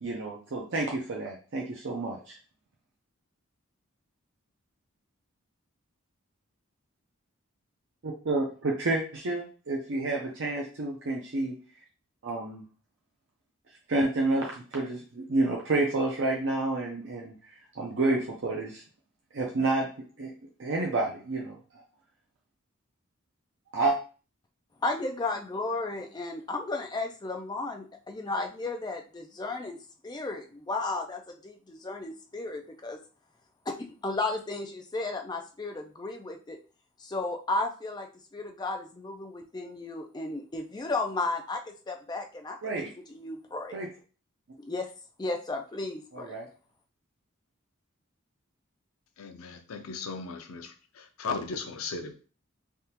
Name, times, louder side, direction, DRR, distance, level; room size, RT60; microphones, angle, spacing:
voice 1, 0.0-2.4 8.0-11.5 12.2-12.6 13.9-18.8 19.3-19.9 20.2-20.3 20.6-21.8 23.7-23.9 42.6-42.9 43.7-43.9 46.1-46.5, right 2 dB, 60° right, -2 dB, 0.6 m, -29 dB
voice 2, 24.8-29.8 30.0-33.0 33.7-36.6 37.0-43.8 44.6-44.9 45.2-46.4, left 2 dB, 20° left, 4 dB, 0.4 m, -34 dB
voice 3, 49.2-50.7 51.2-52.1, left 4 dB, 85° left, 6 dB, 0.5 m, -36 dB
3.5 x 2.4 x 2.8 m, 0.37 s
head